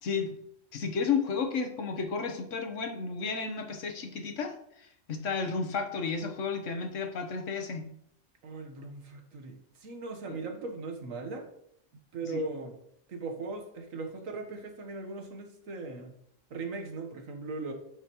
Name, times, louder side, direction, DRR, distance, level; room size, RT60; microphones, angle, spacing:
voice 1, 0.0-0.4 0.7-7.9 10.3-10.4 12.2-12.4, left 5 dB, 70° left, 4 dB, 1.4 m, -32 dB
voice 2, 8.4-11.5 12.1-12.8 13.1-16.1 16.5-17.7, right 3 dB, 85° right, 4 dB, 1.6 m, -38 dB
9.7 x 5.6 x 3.0 m, 0.73 s
omnidirectional pair, 1.3 m